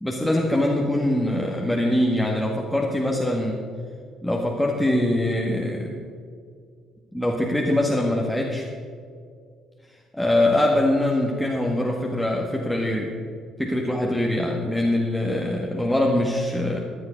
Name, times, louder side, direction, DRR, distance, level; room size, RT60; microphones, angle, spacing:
voice 1, 0.0-3.6 4.2-6.0 7.1-8.7 10.2-13.2 13.6-16.8, left 1 dB, 5° left, -1 dB, 1.7 m, -23 dB
14.0 x 11.0 x 5.2 m, 2.2 s
figure-of-eight pair, 50°, 0 cm